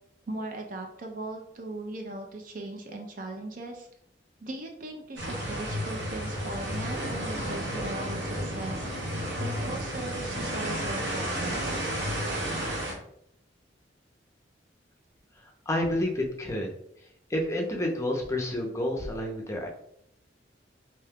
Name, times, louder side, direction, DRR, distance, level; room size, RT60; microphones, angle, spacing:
voice 1, 0.3-3.9 4.4-8.9 9.4-11.8, right 2 dB, 50° right, 2 dB, 0.4 m, -38 dB
sound 1, 5.2-12.9, equal, 85° right, 1.0 m, -32 dB
voice 2, 15.7-16.7 17.3-19.7, left 1 dB, 15° left, 0 dB, 0.5 m, -29 dB
2.8 x 2.2 x 3.4 m, 0.72 s
head